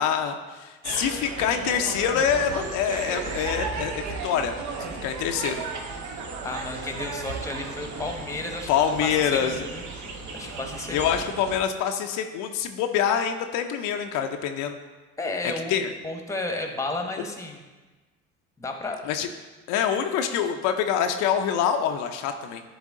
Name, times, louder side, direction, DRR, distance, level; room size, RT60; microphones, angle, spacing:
voice 1, 0.0-4.5 4.8-5.6 8.7-9.6 10.9-14.7 15.7-15.9 19.1-19.3 19.7-22.6, left 8 dB, 70° left, 5 dB, 0.6 m, -25 dB
village crickets pigeon birds distant voices Uganda, 0.8-11.6, right 4 dB, 60° right, 1.1 m, -35 dB
voice 2, 6.4-8.7 9.0-9.8 10.3-11.1 15.2-17.6 18.6-19.0, left 2 dB, 10° left, 4 dB, 1.0 m, -32 dB
10.5 x 3.5 x 3.6 m, 1.3 s
supercardioid pair, 80°, 32 cm